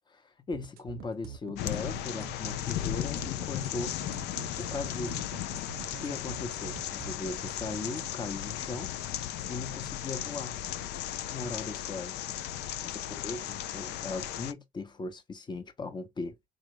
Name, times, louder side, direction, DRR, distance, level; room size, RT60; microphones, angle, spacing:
voice 1, 0.5-4.0 4.6-5.2 6.0-8.9 9.5-10.6 11.3-12.2 12.8-16.3, left 3 dB, 25° left, 0.8 m, -38 dB
sound 1, 0.5-8.1, right 9 dB, 65° right, 0.5 m, -45 dB
sound 2, 1.6-14.5, left 12 dB, 80° left, 0.4 m, -36 dB
3.7 x 2.4 x 3.0 m
cardioid pair, 110°, 17 cm